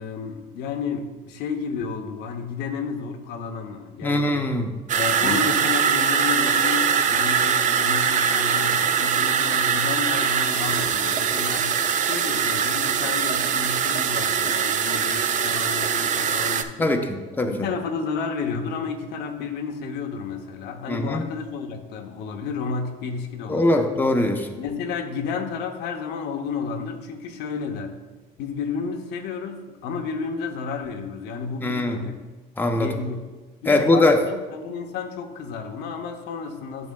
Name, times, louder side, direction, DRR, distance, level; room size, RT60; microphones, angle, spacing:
voice 1, 0.0-4.4 4.9-17.0 17.5-23.8 24.6-28.0 28.4-32.2 32.7-33.2 33.6-36.9, left 5 dB, 80° left, 4 dB, 0.8 m, -31 dB
voice 2, 4.0-4.7 5.2-5.4 16.8-17.5 20.9-21.2 23.5-24.5 31.6-32.0 32.6-32.9 33.7-34.2, left 2 dB, 10° left, 3 dB, 0.7 m, -21 dB
sound 1, 4.9-16.6, right 7 dB, 50° right, 0.4 m, -22 dB
10.5 x 6.2 x 2.2 m, 1.3 s
cardioid pair, 110°, 17 cm